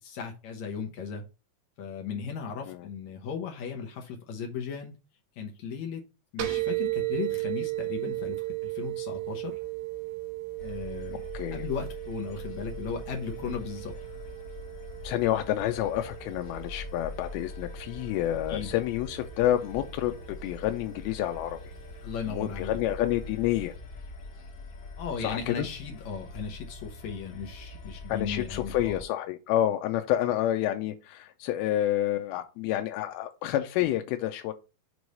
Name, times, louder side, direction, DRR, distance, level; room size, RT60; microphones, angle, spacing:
voice 1, 0.0-1.2 1.8-4.9 5.4-6.1 6.3-9.6 10.6-11.2 11.5-13.9 18.5-18.7 22.0-22.8 25.0-29.0, left 6 dB, 70° left, 1.8 m, -36 dB
sound 1, 6.4-23.7, right 19 dB, 85° right, 3.1 m, -37 dB
sound 2, 10.6-29.0, left 3 dB, 50° left, 2.0 m, -43 dB
voice 2, 15.0-20.1 20.4-21.6 22.3-23.7 25.2-25.7 28.1-34.5, left 13 dB, 90° left, 2.5 m, -29 dB
6.9 x 3.2 x 5.2 m
omnidirectional pair, 4.3 m